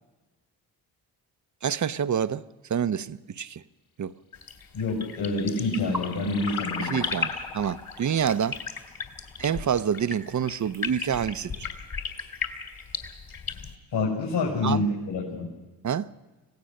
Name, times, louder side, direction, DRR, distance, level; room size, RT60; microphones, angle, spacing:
voice 1, 1.6-2.4 2.7-3.6 4.0-4.1 6.8-8.6 9.4-11.7 14.6-14.8 15.8-16.1, right 8 dB, 40° right, 0.8 m, -27 dB
sound 1, 4.3-13.7, left 4 dB, 50° left, 3.0 m, -36 dB
voice 2, 4.7-7.0 13.9-15.5, left 3 dB, 65° left, 6.9 m, -27 dB
sound 2, 5.5-10.4, left 5 dB, 85° left, 2.5 m, -40 dB
25.5 x 17.0 x 6.5 m
supercardioid pair, 50°, 45 cm